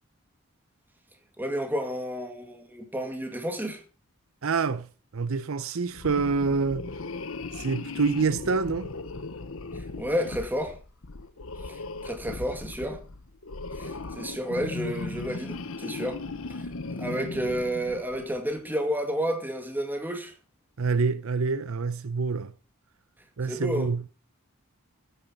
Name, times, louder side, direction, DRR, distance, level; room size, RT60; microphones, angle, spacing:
voice 1, 1.4-3.8 9.8-10.8 11.7-13.0 13.7-16.2 16.5-20.3 23.5-23.9, equal, 10° right, 2.3 m, -31 dB
voice 2, 4.4-4.9 5.1-6.9 7.5-8.9 20.8-22.5 23.4-24.0, right 4 dB, 70° right, 0.7 m, -26 dB
sound 1, 5.9-18.4, left 3 dB, 65° left, 1.0 m, -37 dB
14.0 x 9.7 x 4.5 m
head